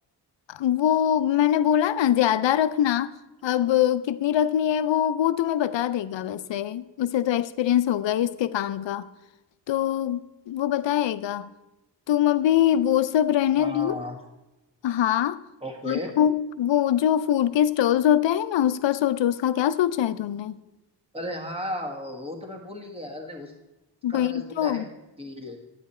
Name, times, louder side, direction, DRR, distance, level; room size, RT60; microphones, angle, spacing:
voice 1, 0.5-3.1 3.4-9.1 9.7-11.5 12.1-14.0 14.8-15.4 15.9-20.6 24.0-24.9, left 10 dB, 80° left, 0.6 m, -23 dB
voice 2, 13.6-14.2 15.6-16.1 21.1-23.5 24.1-24.9 25.2-25.6, equal, 15° right, 1.7 m, -35 dB
11.0 x 9.4 x 4.3 m
wide cardioid pair, 155°, 44 cm